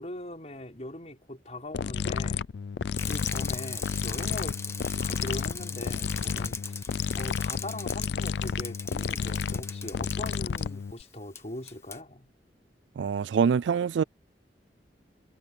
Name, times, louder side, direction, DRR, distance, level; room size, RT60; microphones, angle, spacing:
voice 1, 0.0-2.4 3.1-4.6 5.0-6.7 7.2-12.3, left 1 dB, 40° left, 4.3 m, -41 dB
sound 1, 1.7-11.0, left 6 dB, 70° left, 0.4 m, -31 dB
Bicycle, 3.0-10.6 11.4-11.5 11.7-12.0, left 4 dB, 15° left, 1.2 m, -39 dB
voice 2, 13.0-14.0, right 6 dB, 85° right, 0.3 m, -25 dB
head